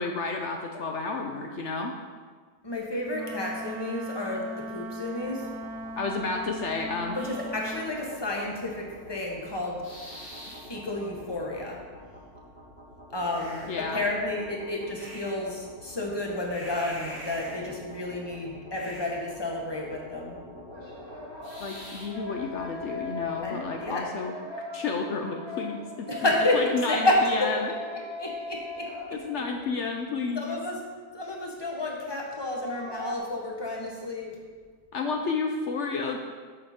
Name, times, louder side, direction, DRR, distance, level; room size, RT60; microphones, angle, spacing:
voice 1, 0.0-1.9 6.0-7.2 13.7-14.0 21.6-24.3 24.7-26.1 26.5-27.7 29.1-30.6 34.9-36.2, left 4 dB, 70° left, 3 dB, 0.7 m, -31 dB
voice 2, 2.6-5.4 7.1-9.8 10.7-11.8 13.1-20.4 23.4-24.0 26.1-27.7 28.2-29.4 30.4-30.8 31.1-34.3, left 1 dB, 20° left, -1 dB, 1.0 m, -30 dB
Wind instrument woodwind instrument, 3.1-7.9, right 1 dB, 70° right, 1.0 m, -38 dB
sound 1, 5.2-23.9, equal, 35° left, 2.9 m, -45 dB
sound 2, 18.1-18.2 20.7-29.6 29.9-30.0 32.3-33.2, left 3 dB, 15° right, 1.7 m, -39 dB
7.7 x 6.4 x 4.3 m, 1.5 s
omnidirectional pair, 1.8 m